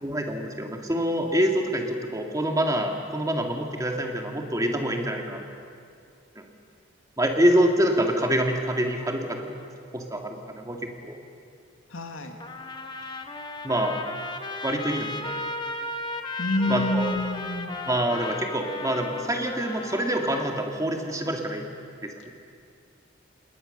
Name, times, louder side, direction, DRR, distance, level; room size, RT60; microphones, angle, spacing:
voice 1, 0.0-5.4 7.2-9.6 9.9-10.8 11.0-11.2 13.6-14.0 14.6-15.3 16.7-17.1 17.9-21.7 22.0-22.3, right 1 dB, 15° right, 2 dB, 2.1 m, -26 dB
voice 2, 11.9-12.4 16.4-17.8, left 1 dB, 85° left, 5 dB, 2.2 m, -28 dB
Trumpet, 12.4-20.6, left 2 dB, 25° left, 1.2 m, -35 dB
28.5 x 20.0 x 6.7 m, 2.3 s
head